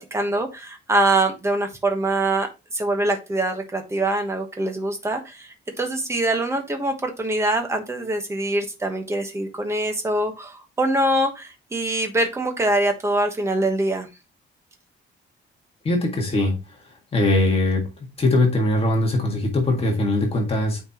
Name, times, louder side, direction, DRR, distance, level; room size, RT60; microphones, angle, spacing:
voice 1, 0.1-2.5 2.7-14.1, right 2 dB, 15° right, 5 dB, 1.2 m, -24 dB
voice 2, 15.8-16.6 17.1-17.9 18.2-20.8, left 2 dB, 30° left, 0 dB, 1.8 m, -21 dB
8.8 x 4.5 x 2.9 m, 0.26 s
cardioid pair, 175°, 20 cm